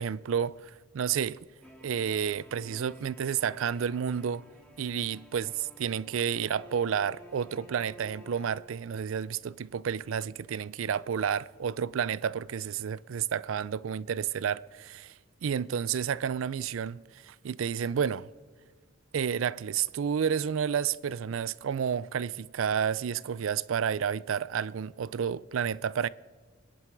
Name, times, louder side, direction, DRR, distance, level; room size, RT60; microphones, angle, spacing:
voice 1, 0.0-1.4 1.8-4.4 4.8-15.1 15.4-18.3 19.1-26.1, right 7 dB, 75° right, 0.4 m, -30 dB
sound 1, 1.6-9.4, equal, 5° left, 2.0 m, -53 dB
27.5 x 10.5 x 4.7 m
head